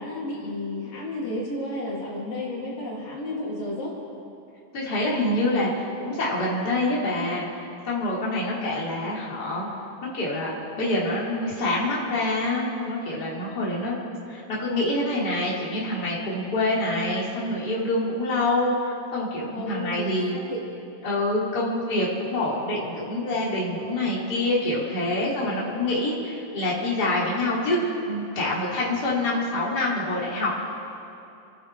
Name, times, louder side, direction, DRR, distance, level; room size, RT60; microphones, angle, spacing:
voice 1, 0.0-3.9 19.5-20.6 22.5-22.6, left 1 dB, 75° left, -5 dB, 4.8 m, -32 dB
voice 2, 4.7-7.5 7.9-9.7 10.0-14.0 14.3-20.4 21.0-30.6, left 1 dB, 30° left, -6 dB, 3.4 m, -26 dB
29.0 x 10.0 x 4.9 m, 2.7 s
omnidirectional pair, 4.0 m